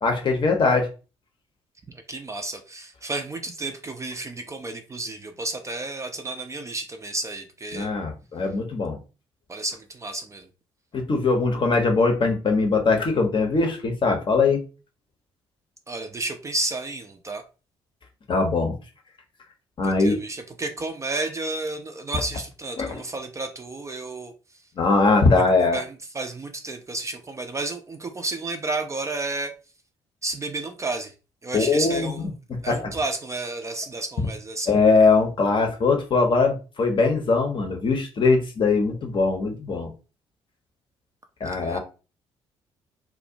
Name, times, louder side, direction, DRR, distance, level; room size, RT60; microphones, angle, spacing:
voice 1, 0.0-0.9 7.7-9.0 10.9-14.6 18.3-18.8 19.8-20.2 22.8-22.9 24.8-25.8 31.5-32.3 32.7-32.9 34.7-39.9 41.4-41.8, left 4 dB, 35° left, 0.7 m, -21 dB
voice 2, 2.1-7.9 9.5-10.5 15.9-17.4 19.8-24.3 25.3-25.4 25.7-29.5 30.2-31.1 31.4-32.3 32.6-34.7 41.4-41.8, right 2 dB, 20° right, 0.4 m, -31 dB
2.4 x 2.1 x 2.7 m
figure-of-eight pair, 45°, 14 cm